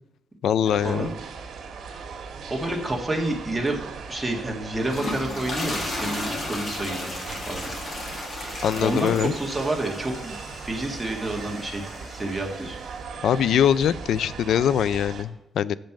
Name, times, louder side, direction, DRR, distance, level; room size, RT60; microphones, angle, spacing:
voice 1, 0.4-1.1 8.6-9.3 13.2-15.8, left 9 dB, 80° left, 18 dB, 0.3 m, -22 dB
sound 1, 0.6-15.2, right 5 dB, 70° right, 1.5 m, -39 dB
voice 2, 2.5-3.8 4.1-7.1 7.5-7.7 8.8-11.8 12.1-12.8, right 2 dB, 10° right, -1 dB, 1.7 m, -29 dB
sound 2, 4.7-13.1, left 2 dB, 40° left, 2.1 m, -35 dB
7.4 x 5.3 x 7.4 m, 0.86 s
cardioid pair, 135°, 0 cm